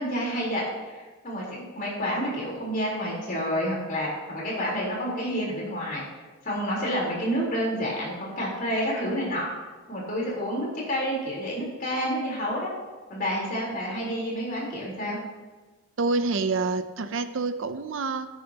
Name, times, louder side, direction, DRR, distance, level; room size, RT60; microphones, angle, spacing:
voice 1, 0.0-6.0 6.4-9.5 9.9-12.7 13.1-15.2, equal, 40° left, -4 dB, 3.8 m, -29 dB
voice 2, 16.0-18.3, right 3 dB, 55° right, 10 dB, 0.5 m, -27 dB
17.0 x 8.9 x 2.9 m, 1.3 s
head